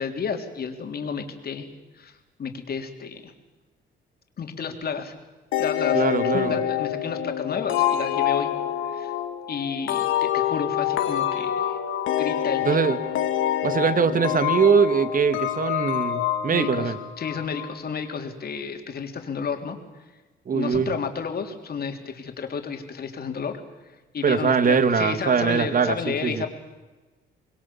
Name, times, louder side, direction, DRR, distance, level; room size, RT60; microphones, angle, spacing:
voice 1, 0.0-1.7 2.0-3.3 4.4-5.1 5.6-8.5 8.9-9.1 9.5-11.8 12.2-13.1 16.5-19.8 20.5-23.6 24.1-26.5, left 6 dB, 50° left, 5 dB, 3.5 m, -31 dB
sound 1, 5.5-17.9, left 11 dB, 85° left, 2.0 m, -26 dB
voice 2, 5.9-6.6 12.6-13.0 13.6-16.9 20.5-20.9 24.2-26.5, right 6 dB, 45° right, 12 dB, 1.7 m, -22 dB
26.5 x 21.0 x 7.1 m, 1.2 s
cardioid pair, 90°, 20 cm